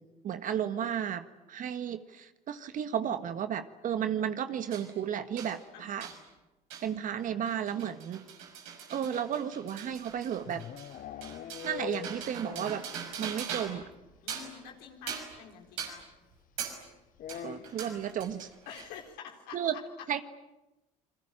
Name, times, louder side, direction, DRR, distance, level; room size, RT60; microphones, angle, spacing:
voice 1, 0.0-6.1 6.8-8.2 8.9-10.6 11.6-12.8 13.2-13.8 17.4-18.5 19.5-19.7 20.1-20.2, right 9 dB, 55° right, 9 dB, 1.7 m, -33 dB
sound 1, 4.7-4.9 5.4-5.5 6.0-6.2 6.7-6.9 7.2-13.9 14.1-14.6 15.1-15.4 15.8-16.0 16.6-16.8 17.3-19.0, right 7 dB, 80° right, 5.9 m, -41 dB
voice 2, 5.7-6.2 14.2-16.1 18.7-20.1, left 8 dB, 75° left, 2 dB, 4.1 m, -47 dB
sound 2, 9.9-13.0 13.2-13.3 13.6-13.7 14.0-14.1 15.3-15.4 17.1-18.0, left 10 dB, 60° left, 1.0 m, -43 dB
29.5 x 22.5 x 9.0 m, 0.98 s
hypercardioid pair, 65°, 16 cm